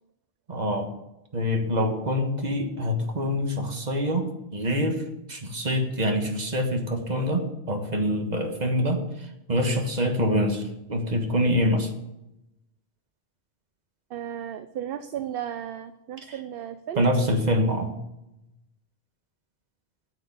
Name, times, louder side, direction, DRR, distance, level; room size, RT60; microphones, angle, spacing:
voice 1, 0.5-0.9 1.3-5.0 5.3-11.9 16.9-17.9, equal, 40° right, 4 dB, 1.5 m, -25 dB
voice 2, 14.1-17.1, right 10 dB, 65° right, 11 dB, 0.8 m, -34 dB
9.2 x 6.6 x 8.4 m, 0.91 s
omnidirectional pair, 1.1 m